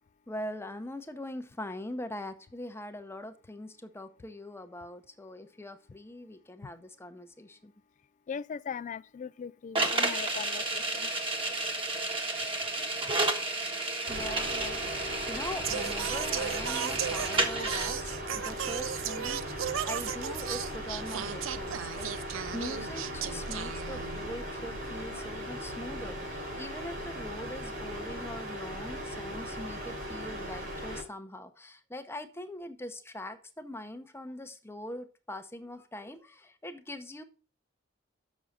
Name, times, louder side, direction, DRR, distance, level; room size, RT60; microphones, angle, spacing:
voice 1, 0.3-7.7 14.1-14.8 15.3-37.2, left 1 dB, 15° left, 0.8 m, -42 dB
voice 2, 8.3-11.1, left 6 dB, 40° left, 0.3 m, -39 dB
sound 1, 9.7-17.9, right 2 dB, 30° right, 1.4 m, -31 dB
sound 2, 14.1-31.0, equal, 60° right, 3.6 m, -38 dB
Singing, 15.6-24.3, right 9 dB, 80° right, 0.5 m, -36 dB
7.1 x 6.2 x 5.3 m
head